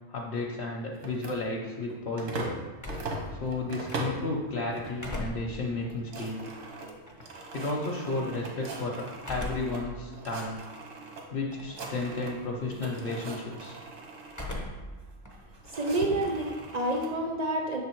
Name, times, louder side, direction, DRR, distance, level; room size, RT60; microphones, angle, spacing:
voice 1, 0.1-2.5 3.3-6.4 7.5-10.6 11.3-13.8, left 2 dB, 55° left, -2 dB, 0.8 m, -33 dB
sound 1, 0.9-2.6 2.9-4.3 4.7-5.2 5.5-5.6 5.8-9.8 10.1-11.2 11.5-12.4 12.7-14.5 15.3-17.1, right 2 dB, 85° right, 1.3 m, -40 dB
sound 2, 2.8-4.4 4.8-7.4 9.2-9.9 10.4-10.5 11.5-12.0 12.3-12.7 14.3-15.0 15.3-16.7, left 1 dB, 20° left, 0.5 m, -40 dB
voice 2, 15.7-17.8, right 1 dB, 65° right, 1 dB, 0.4 m, -29 dB
6.1 x 3.5 x 4.4 m, 1.3 s
omnidirectional pair, 1.3 m